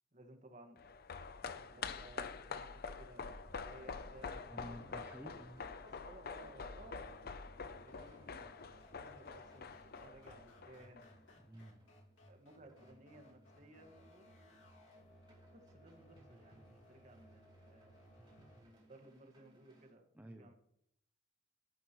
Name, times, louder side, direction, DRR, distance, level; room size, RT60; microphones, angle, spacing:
voice 1, 0.1-0.8 1.5-4.9 5.8-8.6 9.0-11.2 12.3-14.7 15.3-17.9 18.6-20.5, right 1 dB, 40° right, 4 dB, 1.8 m, -59 dB
sound 1, 0.8-11.3 11.6-11.7, left 5 dB, 50° left, 0.6 m, -46 dB
sound 2, 1.7-19.9, right 2 dB, 25° right, 4.5 m, -70 dB
sound 3, 3.2-18.6, equal, 80° left, 2.4 m, -63 dB
voice 2, 4.5-5.6 11.4-11.8 20.1-20.5, equal, 10° right, 5 dB, 0.6 m, -51 dB
12.5 x 12.0 x 3.1 m, 0.74 s
head